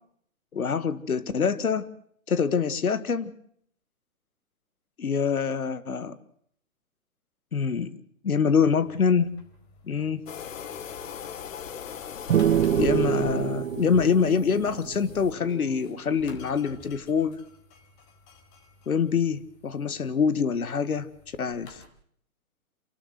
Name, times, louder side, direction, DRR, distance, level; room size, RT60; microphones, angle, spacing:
voice 1, 0.5-1.9 2.3-3.3 5.0-6.2 7.5-7.9 8.2-9.3 9.9-10.2 12.7-17.4 18.9-21.1 21.4-21.8, left 6 dB, 85° left, 14 dB, 1.8 m, -25 dB
sound 1, 8.6-21.9, left 3 dB, 35° left, 4.4 m, -48 dB
sound 2, 10.3-15.3, left 8 dB, 65° left, 1.7 m, -40 dB
sound 3, 12.3-15.9, right 10 dB, 70° right, 0.8 m, -26 dB
28.0 x 12.5 x 7.6 m, 0.64 s
hypercardioid pair, 135°, 42 cm